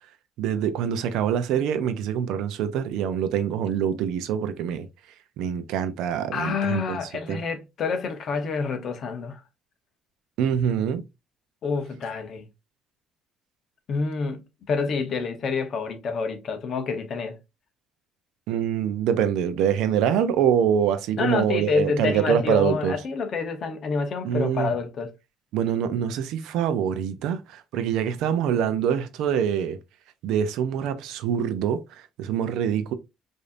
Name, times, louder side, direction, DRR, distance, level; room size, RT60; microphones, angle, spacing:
voice 1, 0.4-4.9 5.4-7.0 7.3-7.4 10.4-11.0 18.5-22.9 24.2-24.7 25.5-29.8 30.2-31.8 32.2-32.9, right 8 dB, 80° right, 0.6 m, -25 dB
voice 2, 6.3-9.4 11.6-12.4 13.9-17.4 21.2-25.1, left 5 dB, 40° left, 0.8 m, -28 dB
5.0 x 2.7 x 2.5 m
cardioid pair, 165°, 0 cm